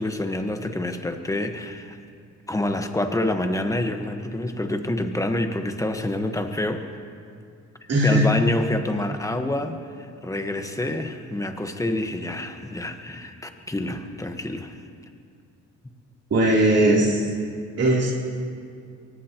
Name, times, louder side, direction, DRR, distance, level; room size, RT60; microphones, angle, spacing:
voice 1, 0.0-2.0 2.5-6.9 8.0-14.8, left 1 dB, 10° left, 6 dB, 1.3 m, -27 dB
voice 2, 7.9-8.3 16.3-17.3 17.8-18.1, right 1 dB, 55° right, -5 dB, 3.4 m, -19 dB
23.0 x 18.5 x 3.0 m, 2.3 s
cardioid pair, 90°, 30 cm